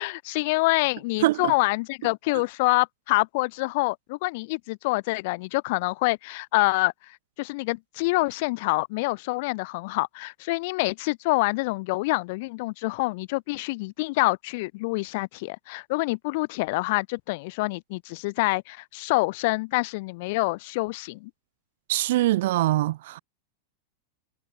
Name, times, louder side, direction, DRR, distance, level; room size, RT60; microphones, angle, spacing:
voice 1, 0.0-21.3, left 24 dB, 50° left, 6.8 m, -26 dB
voice 2, 1.2-1.5 21.9-23.2, right 16 dB, 55° right, 1.9 m, -23 dB
figure-of-eight pair, 90°, 0 cm